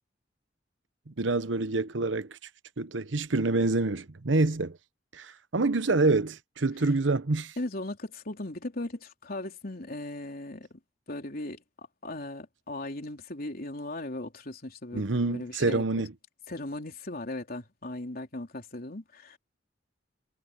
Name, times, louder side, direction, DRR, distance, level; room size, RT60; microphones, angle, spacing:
voice 1, 1.1-2.4 2.8-4.8 5.1-7.5 14.9-16.1, right 3 dB, 80° right, 1.0 m, -27 dB
voice 2, 7.6-10.8 11.1-11.6 12.0-15.8 16.5-19.4, left 2 dB, 55° left, 3.6 m, -38 dB
head